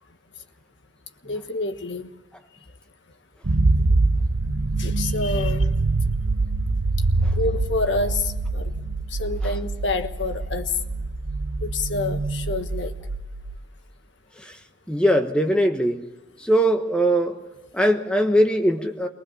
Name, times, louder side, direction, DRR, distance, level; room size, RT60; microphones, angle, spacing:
voice 1, 1.2-2.1 4.8-5.7 7.3-10.7 11.6-13.0, left 3 dB, 70° left, 8 dB, 1.3 m, -28 dB
sound 1, 3.4-13.6, right 2 dB, 90° right, 1.0 m, -24 dB
voice 2, 14.9-16.0 16.4-17.4 17.7-19.1, equal, 5° left, 5 dB, 1.2 m, -20 dB
22.5 x 19.5 x 7.1 m, 1.1 s
head